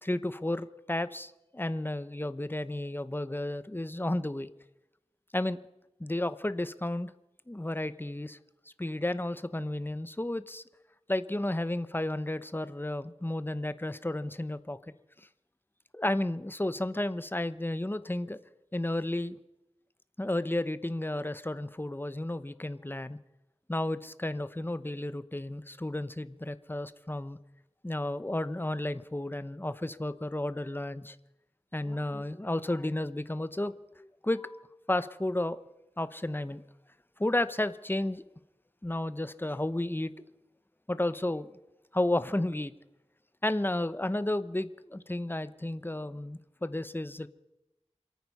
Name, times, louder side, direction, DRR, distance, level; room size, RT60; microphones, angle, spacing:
voice 1, 0.0-4.5 5.3-5.6 6.0-7.1 7.5-8.4 8.8-10.6 11.1-14.8 15.9-18.4 18.7-19.4 20.2-23.2 23.7-27.4 27.8-31.2 31.7-35.6 36.0-36.6 37.2-38.2 38.8-40.1 40.9-41.5 41.9-42.7 43.4-47.3, left 1 dB, 20° left, 13 dB, 0.8 m, -32 dB
27.5 x 9.4 x 5.5 m, 0.93 s
wide cardioid pair, 45°, 12 cm